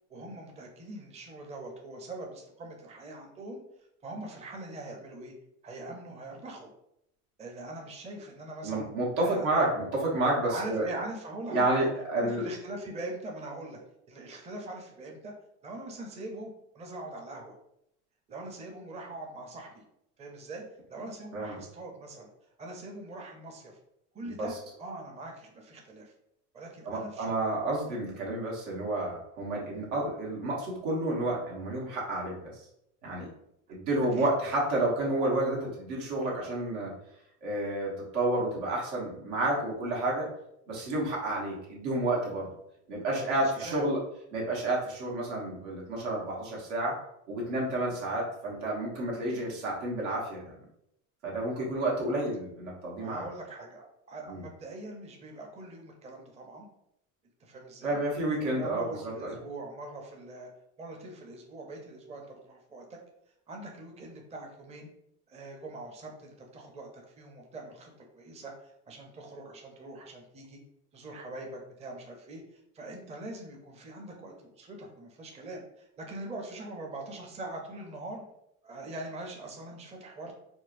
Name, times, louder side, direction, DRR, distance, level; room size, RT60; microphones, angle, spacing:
voice 1, 0.1-3.6 4.0-5.3 5.6-6.7 7.4-8.8 9.2-9.7 10.4-11.9 12.2-13.8 14.1-15.3 15.6-17.6 18.3-19.8 20.2-20.6 20.9-22.3 22.6-23.8 24.1-24.5 24.8-26.1 26.5-27.4 34.1-34.3 43.2-43.8 53.0-56.7 57.4-58.0 58.3-60.5 60.8-63.0 63.5-64.9 65.3-70.6 70.9-78.2 78.6-80.3, right 2 dB, 20° right, 1 dB, 0.5 m, -42 dB
voice 2, 8.6-10.9 11.5-12.5 21.3-21.6 24.4-24.5 26.8-32.7 33.0-33.3 33.7-36.9 37.4-40.3 40.7-42.5 42.9-44.0 44.3-46.9 47.3-50.6 51.2-53.3 54.3-54.4 57.8-59.3, right 2 dB, 85° right, -3 dB, 1.3 m, -30 dB
4.3 x 2.0 x 2.5 m, 0.77 s
supercardioid pair, 110°, 36 cm